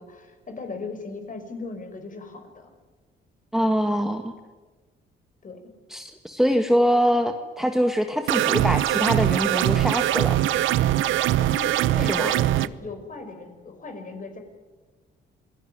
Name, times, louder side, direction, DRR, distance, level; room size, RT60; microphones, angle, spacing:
voice 1, 0.0-2.7 4.1-4.2 5.4-5.6 11.4-14.4, left 3 dB, 40° left, 6 dB, 5.7 m, -38 dB
voice 2, 3.5-4.3 5.9-10.4 12.0-12.3, equal, ahead, 6 dB, 1.7 m, -23 dB
sound 1, 8.3-12.7, right 13 dB, 85° right, 0.8 m, -22 dB
26.5 x 18.5 x 9.6 m, 1.3 s
cardioid pair, 90°, 20 cm